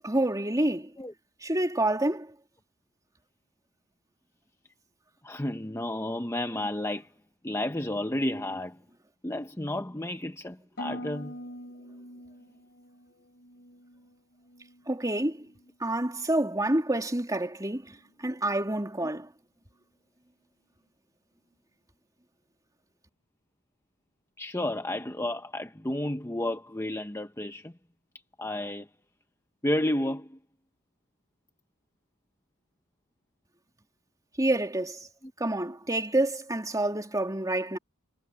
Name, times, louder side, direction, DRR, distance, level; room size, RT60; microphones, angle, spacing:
voice 1, 0.0-0.9 1.4-2.3 14.9-15.5 15.8-19.3 34.4-35.1 35.4-37.8, right 1 dB, 15° right, 3.3 m, -28 dB
voice 2, 5.2-7.1 7.4-8.8 9.2-11.4 24.4-27.7 28.4-28.9 29.6-30.4, left 1 dB, 15° left, 1.0 m, -31 dB
Harp, 10.8-14.9 15.2-15.7 16.2-16.6, left 1 dB, 50° left, 4.7 m, -44 dB
head